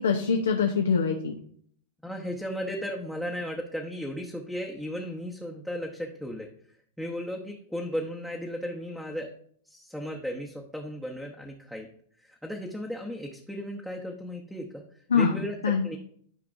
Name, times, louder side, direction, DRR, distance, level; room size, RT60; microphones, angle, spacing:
voice 1, 0.0-1.3 15.1-15.8, left 5 dB, 90° left, 3 dB, 0.8 m, -24 dB
voice 2, 2.0-6.5 7.0-9.3 9.6-11.9 12.2-14.8 15.1-15.6 15.8-16.0, equal, ahead, -1 dB, 0.8 m, -35 dB
12.0 x 4.7 x 2.6 m, 0.62 s
hypercardioid pair, 115°, 0 cm